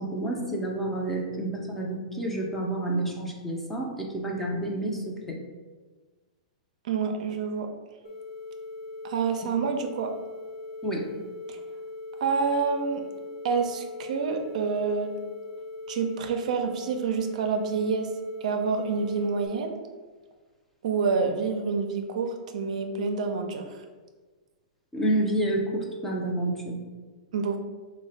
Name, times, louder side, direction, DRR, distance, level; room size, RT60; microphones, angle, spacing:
voice 1, 0.0-5.4 10.8-11.1 24.9-26.8, right 1 dB, 5° left, -1 dB, 0.5 m, -29 dB
voice 2, 6.8-7.7 9.0-10.1 11.5-11.6 12.2-13.0 13.4-15.1 15.9-18.1 18.4-19.7 20.8-23.7 27.3-27.6, right 5 dB, 70° right, 5 dB, 0.4 m, -27 dB
sound 1, 8.0-19.5, left 2 dB, 65° left, 0.7 m, -40 dB
3.1 x 2.1 x 3.9 m, 1.3 s
hypercardioid pair, 140°, 4 cm